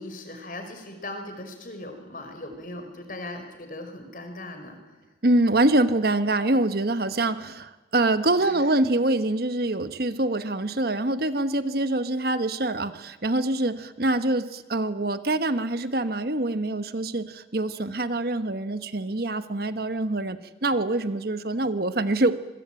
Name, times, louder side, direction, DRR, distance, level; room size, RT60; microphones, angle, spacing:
voice 1, 0.0-4.8 8.4-8.6, left 1 dB, 50° left, 6 dB, 5.0 m, -38 dB
voice 2, 5.2-22.3, right 2 dB, 55° right, 11 dB, 1.2 m, -25 dB
27.0 x 21.5 x 9.0 m, 1.1 s
head